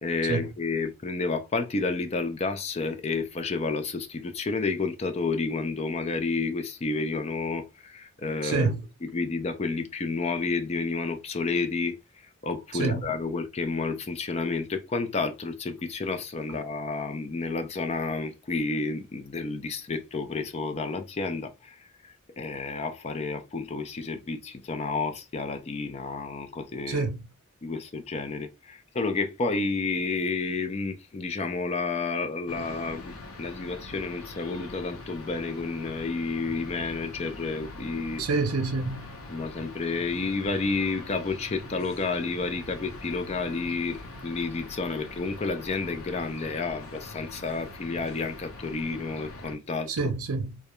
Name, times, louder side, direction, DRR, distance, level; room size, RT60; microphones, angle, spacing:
voice 1, 0.0-8.7 9.0-12.0 12.4-21.8 22.4-27.1 27.6-33.1 33.4-38.2 39.3-50.1, left 3 dB, 30° left, 0.3 m, -30 dB
voice 2, 8.4-8.8 12.7-13.0 26.9-27.3 38.2-39.1 49.9-50.6, right 4 dB, 85° right, 0.5 m, -27 dB
sound 1, 32.5-49.6, left 2 dB, 80° left, 0.6 m, -43 dB
2.3 x 2.1 x 2.9 m
head